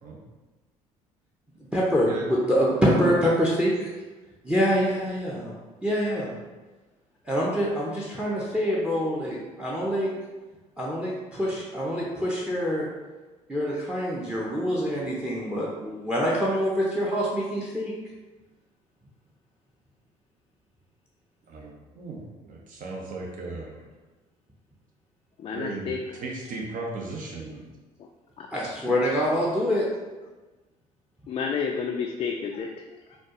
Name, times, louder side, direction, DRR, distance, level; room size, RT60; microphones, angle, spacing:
voice 1, 1.7-3.9 4.4-5.5 5.8-6.3 7.2-10.1 10.8-12.9 13.5-17.9 28.5-29.9, equal, 5° right, -4 dB, 0.7 m, -25 dB
voice 2, 21.5-23.7 25.5-25.9 26.2-27.6, right 3 dB, 45° right, -1 dB, 0.9 m, -36 dB
voice 3, 25.4-26.1 28.0-28.1 28.4-28.5 31.3-33.2, left 6 dB, 30° left, 2 dB, 0.3 m, -31 dB
4.3 x 2.4 x 2.9 m, 1.2 s
figure-of-eight pair, 55°, 18 cm